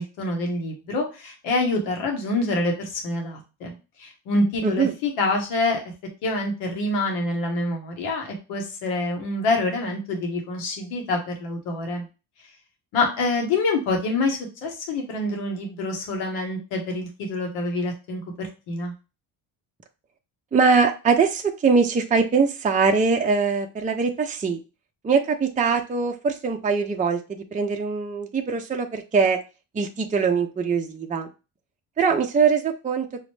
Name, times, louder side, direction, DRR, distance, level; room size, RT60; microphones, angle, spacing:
voice 1, 0.0-5.8 6.2-12.1 12.9-18.9, left 2 dB, 85° left, 2 dB, 1.1 m, -26 dB
voice 2, 4.6-4.9 20.5-24.6 25.0-27.2 27.5-29.4 29.7-31.3 32.0-33.1, right 5 dB, 15° right, 4 dB, 0.5 m, -22 dB
4.9 x 2.0 x 3.1 m, 0.31 s
supercardioid pair, 60°, 49 cm